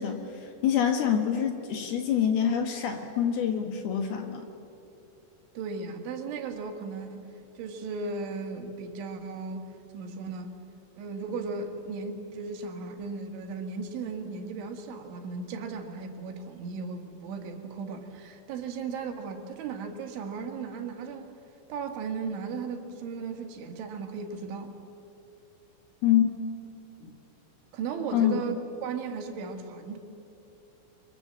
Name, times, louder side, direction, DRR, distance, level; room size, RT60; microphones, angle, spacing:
voice 1, 0.0-4.5 26.0-26.3 27.0-27.1 28.1-28.4, left 9 dB, 65° left, 5 dB, 2.8 m, -26 dB
voice 2, 5.6-7.3 7.6-10.6 11.0-21.4 21.7-24.8 27.7-28.6 28.8-30.0, right 4 dB, 75° right, 5 dB, 4.1 m, -36 dB
30.0 x 25.0 x 7.5 m, 2.9 s
omnidirectional pair, 5.6 m